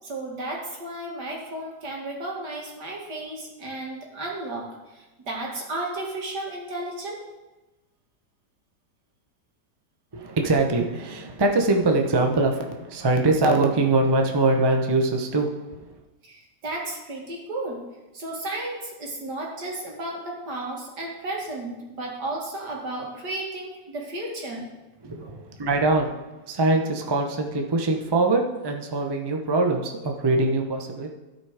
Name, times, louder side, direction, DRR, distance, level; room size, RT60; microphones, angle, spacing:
voice 1, 0.0-7.2 16.2-17.8 18.1-24.7 25.0-25.4, right 2 dB, 70° right, -2 dB, 2.6 m, -33 dB
voice 2, 10.1-16.0 25.0-25.3 25.6-26.1 26.5-31.1, right 2 dB, 30° right, 3 dB, 0.4 m, -23 dB
15.0 x 5.2 x 4.9 m, 1.1 s
omnidirectional pair, 1.9 m